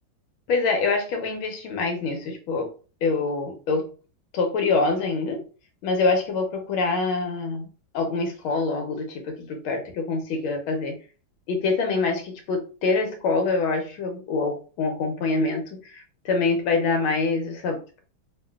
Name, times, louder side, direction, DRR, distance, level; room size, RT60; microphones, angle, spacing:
voice 1, 0.5-2.7 3.0-3.9 4.3-5.4 5.8-7.7 7.9-11.0 11.5-18.0, left 3 dB, 80° left, 4 dB, 1.6 m, -25 dB
3.7 x 2.4 x 2.3 m, 0.36 s
omnidirectional pair, 2.3 m